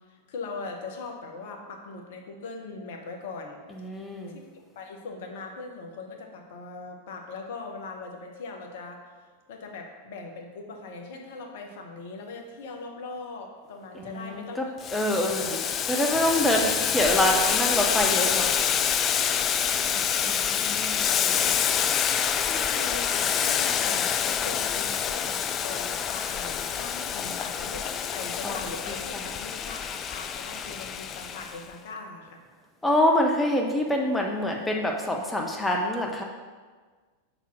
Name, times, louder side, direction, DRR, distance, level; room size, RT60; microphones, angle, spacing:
voice 1, 0.1-3.6 4.7-9.1 9.5-14.6 15.1-15.6 16.3-16.5 19.6-20.6 21.0-21.8 22.4-32.4, left 3 dB, 55° left, 2 dB, 0.9 m, -40 dB
voice 2, 3.7-4.3 14.0-14.6 14.9-18.5 20.2-21.6 28.4-28.6 29.1-29.2 32.8-36.2, left 1 dB, 10° left, 1 dB, 0.7 m, -26 dB
Boiling, 14.8-31.6, left 8 dB, 30° left, 0.3 m, -27 dB
5.6 x 4.0 x 6.1 m, 1.5 s
figure-of-eight pair, 90°, 0 cm